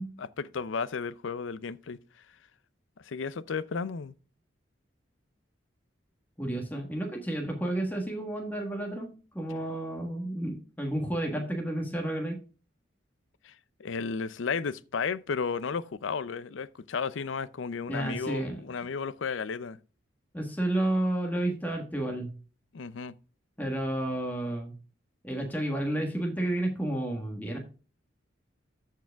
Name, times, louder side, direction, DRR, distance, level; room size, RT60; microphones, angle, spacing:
voice 1, 0.2-2.0 3.0-4.1 13.4-13.5 13.8-19.8 22.7-23.1, left 5 dB, 80° left, 0.5 m, -33 dB
voice 2, 6.4-12.3 17.9-18.6 20.3-22.3 23.6-24.7 25.2-27.6, right 1 dB, 10° left, 1.3 m, -31 dB
13.5 x 4.8 x 3.4 m
head